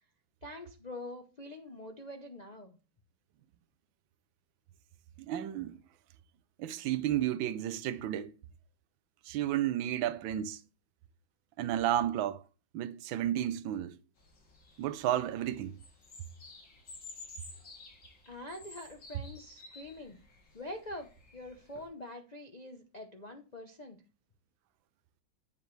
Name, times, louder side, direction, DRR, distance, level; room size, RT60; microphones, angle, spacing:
voice 1, 0.4-2.8 18.2-20.2 20.5-24.0, left 1 dB, 50° left, 0.5 m, -45 dB
voice 2, 5.2-5.8 6.6-8.3 9.2-10.6 11.6-12.4 12.7-14.0 14.8-15.8, right 12 dB, 85° right, 1.4 m, -32 dB
sound 1, 14.2-21.9, left 3 dB, 70° left, 2.8 m, -53 dB
8.8 x 7.4 x 3.2 m
omnidirectional pair, 2.1 m